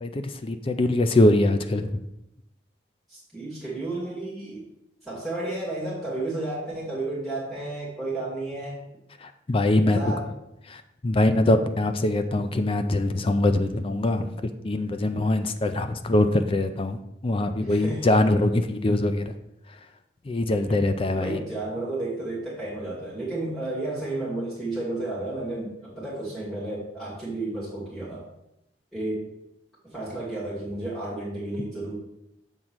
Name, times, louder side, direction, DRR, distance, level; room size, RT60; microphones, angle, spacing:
voice 1, 0.0-2.0 9.2-10.0 10.7-19.3 20.3-21.4, left 1 dB, 30° left, 9 dB, 0.4 m, -23 dB
voice 2, 3.1-4.6 5.0-8.9 9.9-10.3 11.4-11.6 17.7-18.1 20.7-28.2 28.9-29.3 29.8-32.0, right 2 dB, ahead, -8 dB, 2.2 m, -32 dB
7.2 x 3.8 x 6.1 m, 0.84 s
head